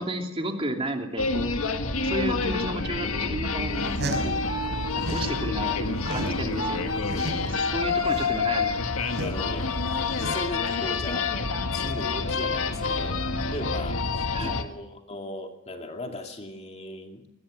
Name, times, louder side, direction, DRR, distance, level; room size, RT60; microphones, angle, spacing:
voice 1, 0.0-1.5 2.0-7.0 7.4-8.8 14.3-14.8, right 1 dB, 25° right, 3 dB, 2.9 m, -33 dB
sound 1, 1.2-14.6, left 4 dB, 90° left, 1.8 m, -28 dB
sound 2, 3.7-5.4 5.7-10.7, right 1 dB, 55° right, 5.4 m, -36 dB
voice 2, 5.4-5.8 6.9-7.7 9.2-11.4 11.7-17.2, left 1 dB, 30° left, 3 dB, 2.5 m, -38 dB
22.0 x 20.0 x 6.7 m, 0.80 s
head